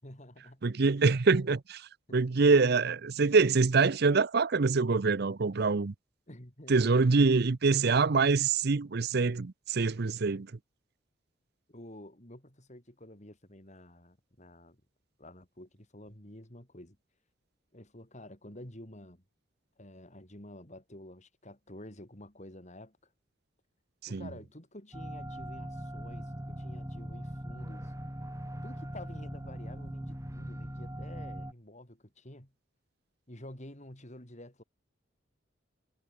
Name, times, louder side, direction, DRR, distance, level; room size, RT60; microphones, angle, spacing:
voice 1, 0.0-0.6 2.1-2.2 6.3-7.3 10.1-10.2 11.7-14.8 15.2-17.0 17.7-19.2 19.8-23.0 24.1-27.9 28.6-32.5 33.3-34.6, left 1 dB, 40° left, 5.3 m, -50 dB
voice 2, 0.6-5.9 6.7-10.5 24.1-24.2, right 4 dB, 55° right, 0.6 m, -25 dB
sound 1, 24.9-31.5, equal, 15° right, 3.4 m, -40 dB
head